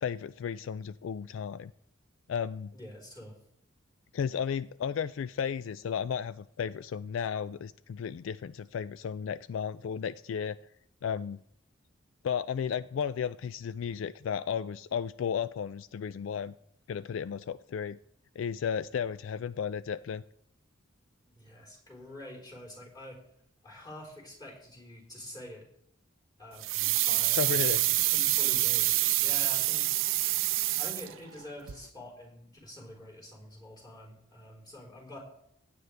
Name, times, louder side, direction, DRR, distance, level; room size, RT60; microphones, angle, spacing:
voice 1, 0.0-1.7 2.3-2.7 4.1-10.6 11.0-11.4 12.2-16.5 16.9-18.0 18.4-20.2 27.4-27.8, left 7 dB, 75° left, 15 dB, 0.3 m, -34 dB
voice 2, 2.7-3.4 21.3-23.2 23.6-25.6 26.4-29.9 30.8-35.2, left 1 dB, 20° left, -1 dB, 4.0 m, -47 dB
sound 1, 26.6-31.4 31.7-31.8, right 16 dB, 80° right, 0.5 m, -27 dB
16.0 x 9.2 x 3.4 m, 0.70 s
head